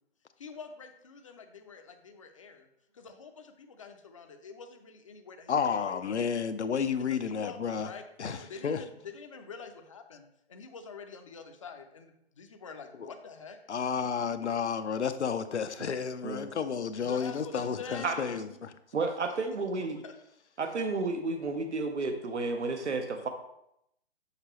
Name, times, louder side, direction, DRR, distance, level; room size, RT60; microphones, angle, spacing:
voice 1, 0.4-2.7 2.9-6.0 7.1-13.6 17.0-18.6 19.3-19.4 20.0-20.1, left 5 dB, 30° left, 0.5 m, -46 dB
voice 2, 5.5-7.9 8.2-8.4 8.6-8.8 13.0-13.1 13.7-18.7, left 6 dB, 80° left, 0.7 m, -31 dB
voice 3, 18.9-20.0 20.6-23.3, right 3 dB, 85° right, 0.9 m, -31 dB
6.7 x 5.5 x 3.0 m
figure-of-eight pair, 145°, 34 cm